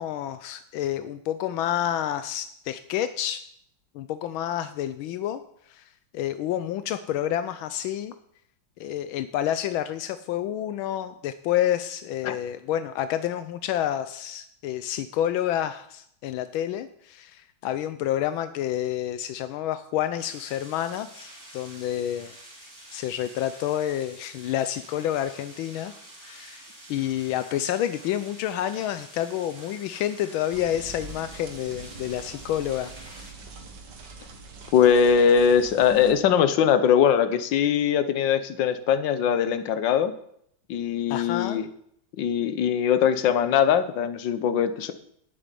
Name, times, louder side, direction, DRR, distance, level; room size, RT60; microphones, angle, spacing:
voice 1, 0.0-3.5 3.9-5.4 5.7-8.1 8.8-22.4 22.9-25.9 26.2-26.6 26.9-32.9 41.1-41.6, left 11 dB, 85° left, 11 dB, 1.4 m, -29 dB
sound 1, 20.2-33.3, right 1 dB, 35° right, 4.2 m, -48 dB
sound 2, 30.5-36.1, right 3 dB, 60° right, 2.1 m, -44 dB
voice 2, 34.7-40.1 40.7-41.7 42.2-44.9, left 7 dB, 70° left, 10 dB, 1.6 m, -21 dB
9.3 x 7.8 x 9.2 m, 0.70 s
omnidirectional pair, 2.2 m